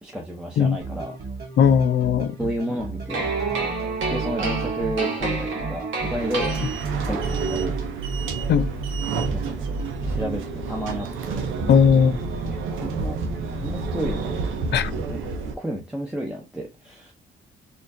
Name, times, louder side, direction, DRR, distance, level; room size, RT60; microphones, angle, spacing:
voice 1, 0.0-1.2 2.4-3.3 4.1-6.7 7.0-7.8 9.3-9.6 10.0-11.5 12.4-13.1 13.6-14.4 14.8-15.2 15.6-17.1, equal, 5° right, 0.8 m, -31 dB
sound 1, 0.8-10.4, right 3 dB, 50° right, 1.9 m, -32 dB
voice 2, 1.6-2.4 8.5-8.7 11.7-12.1 14.7-14.9, left 7 dB, 60° left, 0.5 m, -17 dB
sound 2, 3.1-7.2, right 4 dB, 70° right, 1.4 m, -29 dB
sound 3, 6.0-15.5, right 3 dB, 90° right, 0.7 m, -30 dB
4.2 x 2.6 x 2.6 m
cardioid pair, 90°, 20 cm